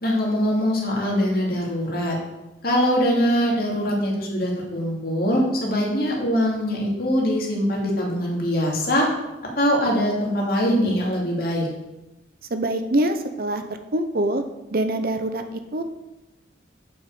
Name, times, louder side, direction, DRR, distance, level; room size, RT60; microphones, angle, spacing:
voice 1, 0.0-2.2 2.6-9.1 9.6-11.7, equal, 55° left, -2 dB, 2.5 m, -22 dB
voice 2, 12.5-13.6 13.9-14.4 14.7-15.8, right 1 dB, 50° right, 8 dB, 0.7 m, -24 dB
7.3 x 6.2 x 6.8 m, 0.98 s
head